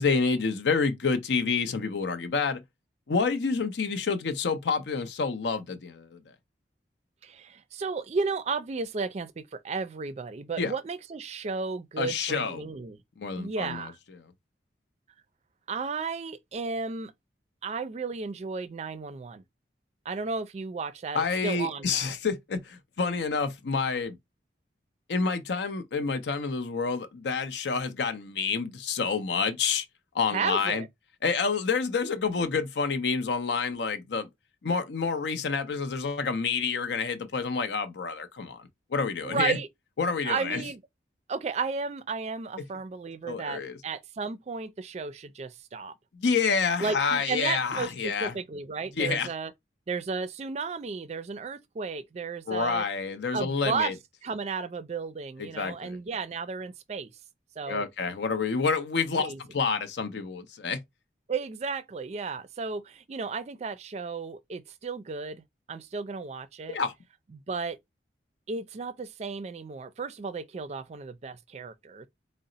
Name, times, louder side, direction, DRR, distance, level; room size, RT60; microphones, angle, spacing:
voice 1, 0.0-2.6 3.1-6.2 10.6-10.7 12.0-12.7 13.2-13.9 21.1-24.2 25.1-29.8 30.1-30.8 31.2-34.3 34.6-38.6 38.9-39.6 40.0-40.6 43.3-43.8 46.1-48.3 49.0-49.3 52.5-53.9 55.5-56.0 57.7-60.8 66.7-66.9, left 5 dB, 80° left, 0.6 m, -28 dB
voice 2, 7.2-13.0 13.4-14.0 15.7-17.1 17.6-19.4 20.1-22.1 30.3-30.9 39.2-39.7 40.2-40.8 41.3-45.9 46.8-49.5 49.9-52.8 53.3-53.9 54.2-57.1 57.6-57.8 59.2-59.4 61.3-65.4 65.7-66.8 67.3-67.8 68.5-72.1, right 4 dB, 40° right, 0.4 m, -33 dB
3.9 x 2.0 x 3.8 m
head